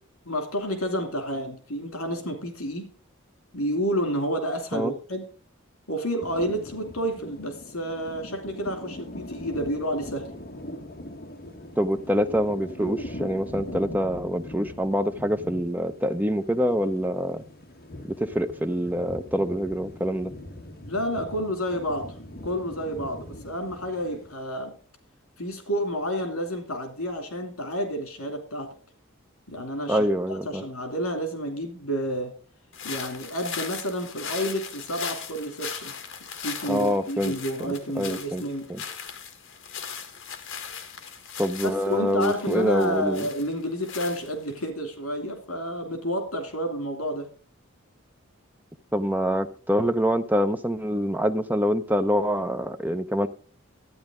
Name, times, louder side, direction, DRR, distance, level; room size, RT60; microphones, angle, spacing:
voice 1, 0.3-2.9 3.5-5.2 5.9-10.3 20.9-22.1 22.4-24.8 25.4-28.7 29.5-32.3 32.8-35.9 36.4-38.7 41.6-47.3, equal, 80° left, 2.7 m, -30 dB
sound 1, 6.2-24.3, left 1 dB, 45° left, 1.5 m, -41 dB
voice 2, 11.8-17.4 18.0-20.3 29.9-30.6 36.7-37.4 37.7-38.4 38.7-38.8 41.4-43.3 48.9-53.3, equal, 10° right, 0.6 m, -25 dB
sound 2, 32.7-44.7, left 7 dB, 60° left, 1.6 m, -38 dB
12.5 x 9.3 x 3.7 m
head